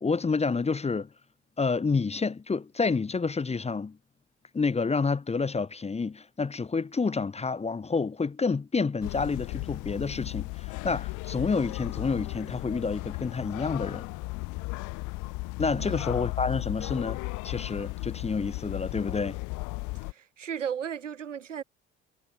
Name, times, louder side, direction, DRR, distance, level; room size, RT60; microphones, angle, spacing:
voice 1, 0.0-1.1 1.6-4.0 4.5-14.1 15.6-19.4, left 4 dB, 15° left, 0.9 m, -29 dB
sound 1, 9.0-20.1, left 25 dB, 55° left, 0.6 m, -35 dB
voice 2, 20.1-21.6, right 8 dB, 90° right, 1.6 m, -35 dB
figure-of-eight pair, 55°, 36 cm